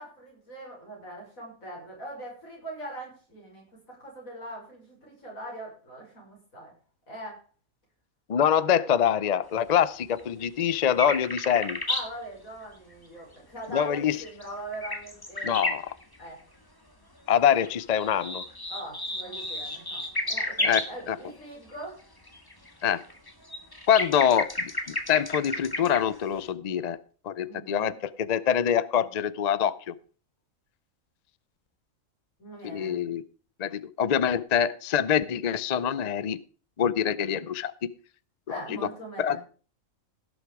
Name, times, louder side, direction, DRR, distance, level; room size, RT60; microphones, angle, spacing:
voice 1, 0.0-6.7 7.1-7.4 11.9-15.6 16.2-16.4 18.7-22.0 27.5-28.0 32.4-33.0 38.5-39.4, right 1 dB, 75° left, -2 dB, 6.3 m, -41 dB
voice 2, 8.3-11.8 13.7-14.2 15.4-15.8 17.3-18.4 20.6-21.2 22.8-23.0 23.9-27.0 27.2-29.9 32.6-33.2 33.6-36.4 36.8-37.7 38.5-38.8 39.2-39.4, left 9 dB, 50° left, 17 dB, 0.5 m, -25 dB
sound 1, 10.2-12.1 14.0-16.2 17.3-20.9 22.3-26.2 26.4-26.5, left 1 dB, 15° left, 1.5 m, -32 dB
17.0 x 6.9 x 4.8 m, 0.39 s
omnidirectional pair, 1.4 m